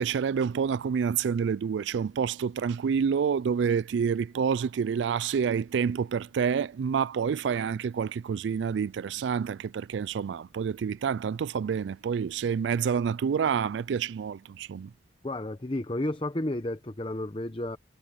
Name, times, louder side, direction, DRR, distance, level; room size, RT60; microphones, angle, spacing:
voice 1, 0.0-14.9, right 6 dB, 75° right, 0.3 m, -28 dB
voice 2, 15.2-17.8, left 1 dB, 30° left, 0.8 m, -32 dB
head